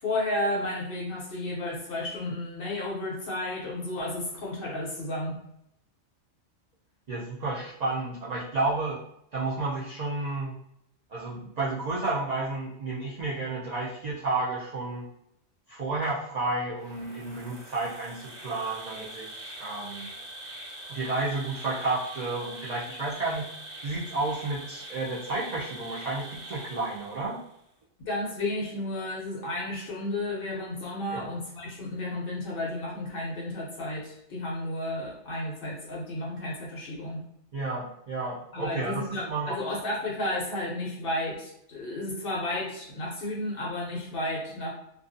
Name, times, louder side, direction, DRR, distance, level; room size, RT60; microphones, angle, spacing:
voice 1, 0.0-5.4 28.0-37.2 38.5-44.7, left 1 dB, 55° left, -3 dB, 0.7 m, -32 dB
voice 2, 7.1-9.0 9.3-10.5 11.1-15.0 15.7-20.1 20.9-23.5 23.8-27.4 31.1-31.3 37.5-39.6, right 3 dB, 80° right, -7 dB, 0.3 m, -31 dB
Insect, 16.7-27.5, right 1 dB, 50° right, 0.8 m, -43 dB
2.4 x 2.3 x 2.5 m, 0.76 s
omnidirectional pair, 1.4 m